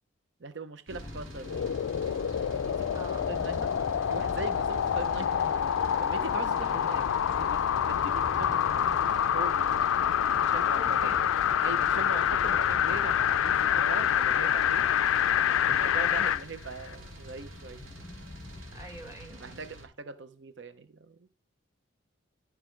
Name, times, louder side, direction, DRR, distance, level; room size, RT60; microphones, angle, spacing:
voice 1, 0.4-1.7 2.2-3.7 4.1-5.5 5.8-7.0 7.4-11.2 11.6-14.9 15.3-17.8 19.4-21.3, right 3 dB, 60° right, 0.7 m, -41 dB
sound 1, 0.9-19.1, left 2 dB, 20° left, 0.5 m, -45 dB
sound 2, 0.9-19.8, right 1 dB, 85° right, 2.2 m, -49 dB
sound 3, 1.4-16.4 16.9-17.0, left 9 dB, 85° left, 0.3 m, -27 dB
voice 2, 2.9-3.3 6.8-7.1 10.6-11.3 18.7-19.6, right 1 dB, 15° right, 1.6 m, -45 dB
13.0 x 4.7 x 4.5 m
head